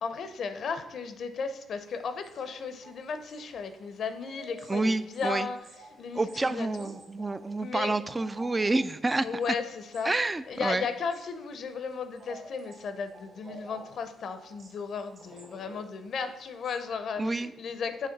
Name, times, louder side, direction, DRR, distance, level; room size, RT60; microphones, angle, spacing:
voice 1, 0.0-5.6 6.0-6.9 7.6-8.0 9.2-10.1 10.5-18.1, left 5 dB, 60° left, 10 dB, 0.6 m, -35 dB
sound 1, 1.8-16.8, right 2 dB, 55° right, 1.7 m, -51 dB
voice 2, 4.7-5.5 6.2-9.5 10.0-10.9 17.2-17.5, right 2 dB, 20° right, 14 dB, 0.3 m, -28 dB
6.5 x 3.1 x 5.7 m, 0.92 s
cardioid pair, 90°, 0 cm